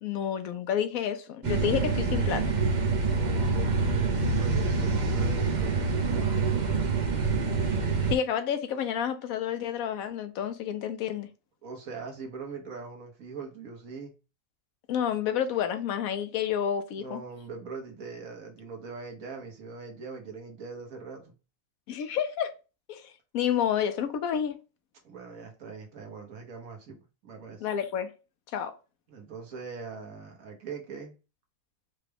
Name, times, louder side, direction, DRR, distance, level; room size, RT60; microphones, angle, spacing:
voice 1, 0.0-2.5 8.1-11.3 14.9-17.2 21.9-22.5 22.9-24.6 27.6-28.1 28.5-28.8, left 9 dB, 80° left, 1.0 m, -29 dB
sound 1, 1.4-8.2, right 4 dB, 50° right, 0.5 m, -26 dB
voice 2, 3.0-6.8 11.6-14.1 17.0-21.3 25.0-27.7 29.1-31.2, right 4 dB, 75° right, 1.5 m, -42 dB
4.9 x 2.2 x 3.3 m
omnidirectional pair, 1.5 m